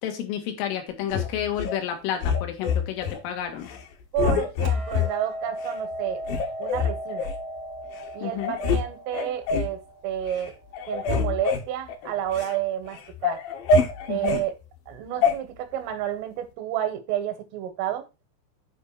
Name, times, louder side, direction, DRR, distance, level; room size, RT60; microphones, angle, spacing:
voice 1, 0.0-3.7 8.2-8.6 14.1-14.4, left 9 dB, 90° left, 4.4 m, -30 dB
sound 1, 1.1-1.8 2.2-3.2 3.6-3.8 4.2-5.1 5.7-5.8 6.2-7.4 8.0-8.1 8.4-8.8 9.1-9.8 10.2-10.5 10.7-12.5 12.9-14.4 15.2-15.4, left 4 dB, 70° left, 2.4 m, -25 dB
voice 2, 4.1-6.2 6.6-7.3 8.1-10.5 10.9-13.4 14.1-14.5 14.9-18.1, right 11 dB, 90° right, 3.9 m, -30 dB
Hammer, 4.6-10.9, equal, 75° right, 1.7 m, -37 dB
9.3 x 5.0 x 4.7 m
omnidirectional pair, 5.6 m